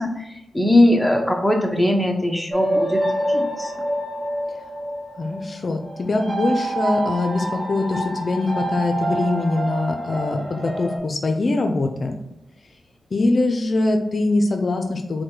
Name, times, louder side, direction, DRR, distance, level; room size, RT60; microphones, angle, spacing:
voice 1, 0.0-3.7, left 1 dB, ahead, 1 dB, 0.6 m, -20 dB
sound 1, 2.5-11.0, right 1 dB, 35° right, 1.1 m, -27 dB
voice 2, 5.2-12.1 13.1-15.2, left 2 dB, 45° left, 5 dB, 0.5 m, -22 dB
4.6 x 2.2 x 4.5 m, 0.89 s
wide cardioid pair, 95°, 0 cm